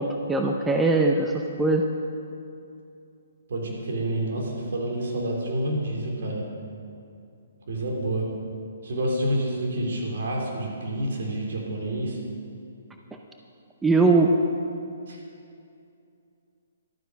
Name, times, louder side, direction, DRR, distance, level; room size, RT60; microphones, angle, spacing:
voice 1, 0.0-1.3 1.6-1.8 13.8-14.3, right 3 dB, 10° right, 2 dB, 0.7 m, -20 dB
voice 2, 3.5-6.4 7.7-8.3 8.8-12.2 15.1-15.2, right 1 dB, 65° right, -1 dB, 3.3 m, -28 dB
12.0 x 9.2 x 6.3 m, 2.5 s
hypercardioid pair, 140°, 0 cm